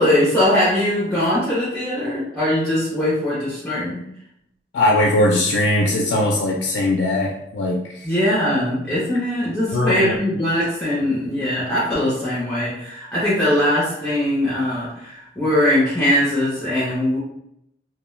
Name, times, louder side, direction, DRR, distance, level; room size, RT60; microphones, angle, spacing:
voice 1, 0.0-4.0 8.0-17.2, left 1 dB, 10° left, -9 dB, 0.7 m, -21 dB
voice 2, 4.7-8.1 9.7-10.2 11.0-11.1, left 1 dB, 75° left, -1 dB, 0.3 m, -20 dB
2.2 x 2.2 x 3.1 m, 0.77 s
head